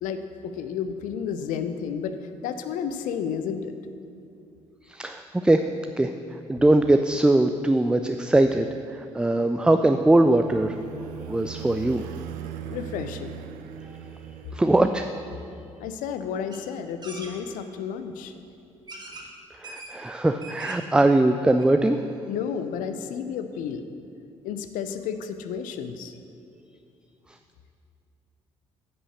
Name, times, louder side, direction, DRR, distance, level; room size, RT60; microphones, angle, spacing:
voice 1, 0.0-2.2 2.4-3.7 12.7-13.4 15.8-18.3 22.3-23.9 24.4-26.1, left 7 dB, 65° left, 9 dB, 0.6 m, -31 dB
voice 2, 4.8-5.6 6.0-10.8 11.2-12.1 14.5-15.1 19.5-22.0 27.3-27.4, right 1 dB, 5° right, 8 dB, 0.3 m, -21 dB
sound 1, 9.5-15.3, right 9 dB, 65° right, 0.5 m, -40 dB
sound 2, 16.5-16.6 17.0-17.3 18.2-18.3 18.9-19.3 19.6-19.9 20.3-20.9 21.3-21.4 21.6-21.7, right 2 dB, 30° right, 1.5 m, -41 dB
9.6 x 5.5 x 6.6 m, 2.6 s
figure-of-eight pair, 45°, 15 cm